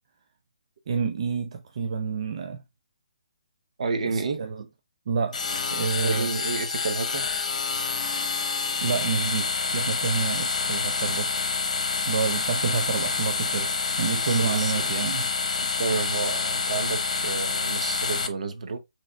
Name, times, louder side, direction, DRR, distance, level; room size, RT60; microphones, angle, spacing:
voice 1, 0.9-2.6 4.0-4.6 5.1-5.4 5.7-6.3 8.8-11.3 12.1-13.7 14.0-15.3, right 5 dB, 50° right, 0.5 m, -28 dB
voice 2, 3.8-4.5 6.0-7.3 14.3-14.9 15.8-18.8, right 4 dB, 65° right, 0.9 m, -30 dB
sound 1, 5.3-18.3, left 4 dB, 65° left, 1.0 m, -27 dB
6.2 x 3.4 x 2.2 m
hypercardioid pair, 165°, 4 cm